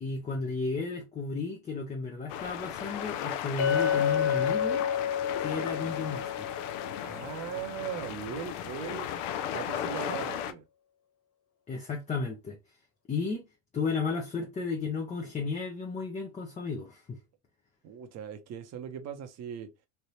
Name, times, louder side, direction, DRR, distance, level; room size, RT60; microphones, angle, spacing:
voice 1, 0.0-4.8 5.4-6.5 11.7-12.6 13.1-13.4 13.7-17.2, left 4 dB, 20° left, 0.6 m, -33 dB
sound 1, 2.3-10.5, left 9 dB, 70° left, 0.6 m, -36 dB
Chink clink, 3.6-7.8, left 8 dB, 40° left, 0.9 m, -30 dB
voice 2, 7.0-9.1 9.5-10.6 17.8-19.7, right 9 dB, 45° right, 0.8 m, -39 dB
3.3 x 2.5 x 2.8 m
supercardioid pair, 95°, 38 cm